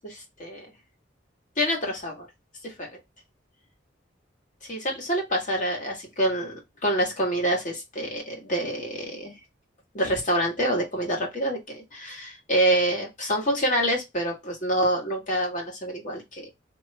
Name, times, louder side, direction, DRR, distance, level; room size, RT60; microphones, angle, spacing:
voice 1, 0.0-0.7 1.6-2.3 2.6-2.9 4.7-9.3 9.9-16.5, right 1 dB, 45° left, 1 dB, 1.5 m, -27 dB
3.9 x 2.9 x 3.2 m, 0.20 s
head